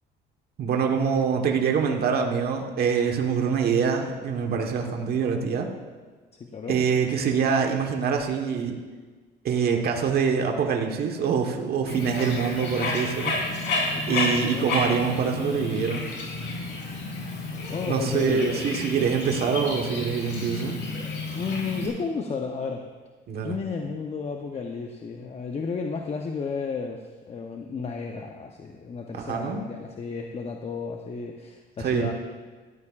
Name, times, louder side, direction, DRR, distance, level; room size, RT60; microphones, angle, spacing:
voice 1, 0.6-5.7 6.7-8.8 9.4-13.3 14.1-16.0 17.9-20.8 23.3-23.5 29.1-29.6 31.8-32.1, right 6 dB, 55° right, 2 dB, 1.3 m, -25 dB
voice 2, 6.4-6.8 13.8-14.7 17.7-18.8 20.7-20.8 21.3-22.8 23.4-32.1, left 5 dB, 30° left, 3 dB, 0.8 m, -33 dB
Bird, 11.9-21.9, left 3 dB, 65° left, 3.7 m, -31 dB
17.0 x 13.5 x 2.5 m, 1.4 s
cardioid pair, 120°, 20 cm